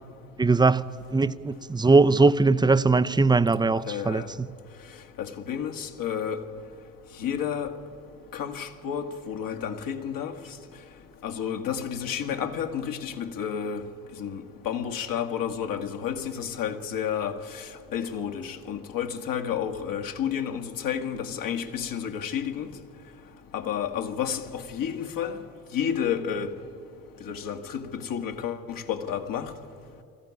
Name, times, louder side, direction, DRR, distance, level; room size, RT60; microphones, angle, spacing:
voice 1, 0.4-0.8 1.1-4.2, right 3 dB, 10° right, 0.7 m, -20 dB
voice 2, 3.9-4.3 5.2-6.4 7.2-7.7 8.3-10.3 11.2-13.9 14.2-22.7 23.5-25.4 25.7-26.5 27.2-29.5, left 8 dB, 50° left, 1.8 m, -31 dB
21.0 x 14.5 x 9.7 m
hypercardioid pair, 55°, 41 cm